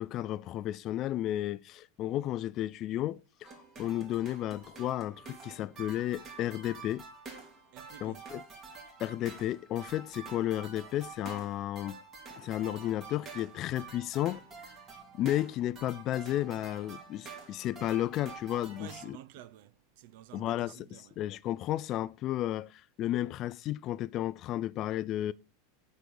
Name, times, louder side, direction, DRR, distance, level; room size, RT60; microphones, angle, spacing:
voice 1, 0.0-7.0 8.0-8.4 9.0-12.0 12.3-14.4 15.1-19.2 20.3-20.9 21.2-25.3, left 13 dB, 40° left, 0.4 m, -33 dB
sound 1, 3.4-19.1, right 4 dB, 30° right, 2.8 m, -48 dB
voice 2, 7.7-8.2 10.1-10.5 18.8-21.2, right 13 dB, 65° right, 0.7 m, -51 dB
sound 2, 12.6-19.4, right 4 dB, 10° right, 1.6 m, -65 dB
8.5 x 4.8 x 7.0 m
supercardioid pair, 145°, 0 cm